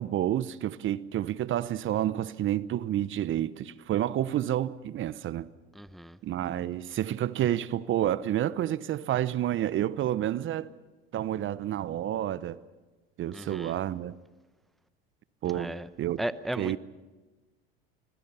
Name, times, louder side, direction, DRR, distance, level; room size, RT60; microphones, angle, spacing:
voice 1, 0.0-5.5 6.2-10.7 11.1-12.6 13.2-14.2 15.4-16.2 16.6-16.8, right 12 dB, 40° right, 0.9 m, -29 dB
voice 2, 5.7-6.2 13.3-13.8 15.4-15.9 16.2-16.8, right 1 dB, ahead, 0.8 m, -36 dB
25.5 x 22.0 x 5.7 m
hypercardioid pair, 85°, 30 cm